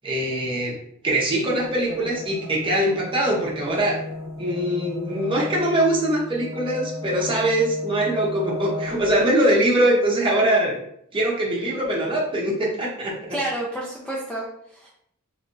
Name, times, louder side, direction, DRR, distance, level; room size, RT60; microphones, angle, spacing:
voice 1, 0.0-0.8 1.0-4.0 4.4-10.8 11.1-13.4, right 1 dB, 25° right, -4 dB, 0.9 m, -22 dB
sound 1, 1.6-9.3, left 2 dB, 80° right, 0.7 m, -36 dB
voice 2, 13.3-14.9, right 1 dB, 5° left, -4 dB, 0.4 m, -30 dB
3.3 x 3.1 x 2.6 m, 0.71 s
head